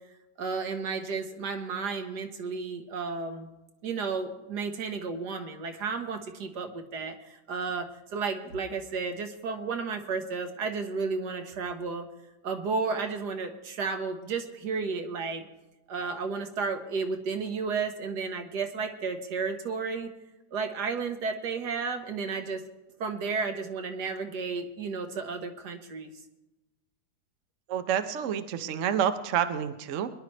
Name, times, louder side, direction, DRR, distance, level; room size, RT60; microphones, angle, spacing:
voice 1, 0.4-3.5 3.8-7.9 8.1-12.1 12.4-15.5 15.9-20.1 20.5-22.6 23.0-26.1, right 4 dB, 80° right, 5 dB, 1.8 m, -32 dB
voice 2, 27.7-30.1, right 9 dB, 55° right, 9 dB, 1.0 m, -28 dB
23.5 x 11.0 x 3.3 m, 1.0 s
omnidirectional pair, 1.8 m